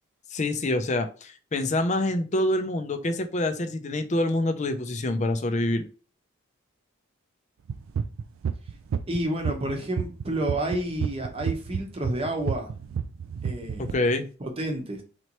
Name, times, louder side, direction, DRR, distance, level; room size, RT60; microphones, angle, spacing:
voice 1, 0.3-5.9 13.8-14.3, left 1 dB, 35° left, 0.5 m, -26 dB
sound 1, 7.7-13.9, right 7 dB, 70° right, 0.3 m, -29 dB
voice 2, 9.1-12.7 13.4-14.0 14.4-15.0, right 1 dB, 25° right, 0.9 m, -30 dB
4.0 x 3.2 x 3.0 m
head